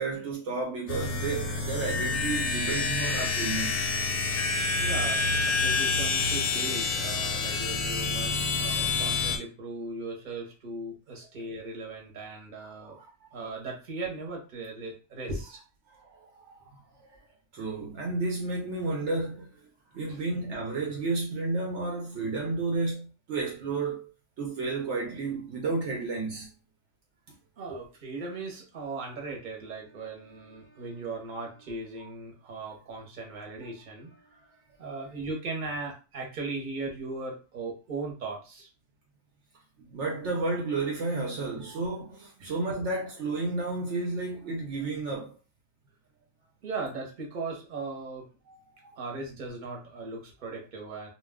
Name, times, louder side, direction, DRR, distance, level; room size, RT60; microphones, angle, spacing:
voice 1, 0.0-3.9 5.7-5.8 12.6-13.3 15.9-17.1 17.5-19.5 19.9-24.1 24.4-26.5 39.8-45.3 48.5-49.0, right 3 dB, 70° right, 0.9 m, -32 dB
sound 1, 0.9-9.4, left 4 dB, 60° left, 0.7 m, -28 dB
voice 2, 4.8-13.0 13.3-15.6 20.1-20.2 27.6-38.7 42.4-42.5 46.6-48.3 49.0-51.1, right 3 dB, 40° right, 0.9 m, -38 dB
2.3 x 2.2 x 3.4 m
omnidirectional pair, 1.3 m